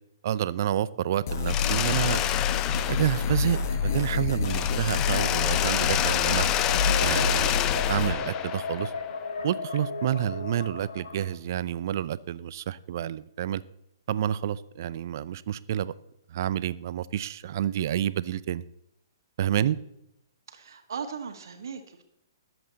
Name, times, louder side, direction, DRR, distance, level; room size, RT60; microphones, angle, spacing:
voice 1, 0.2-2.2 2.9-6.5 7.0-7.5 7.9-8.9 9.4-13.6 14.1-15.9 16.3-18.6 19.4-19.8, right 11 dB, 55° right, 0.6 m, -29 dB
sound 1, 1.3-8.1, left 6 dB, 50° left, 1.3 m, -28 dB
Mechanisms, 1.5-4.1 4.4-9.3, left 11 dB, 25° left, 0.6 m, -28 dB
sound 2, 3.1-11.3, left 3 dB, 80° left, 2.9 m, -37 dB
voice 2, 20.5-22.0, right 6 dB, 70° right, 1.6 m, -38 dB
19.5 x 7.9 x 4.1 m
hypercardioid pair, 130°, 2 cm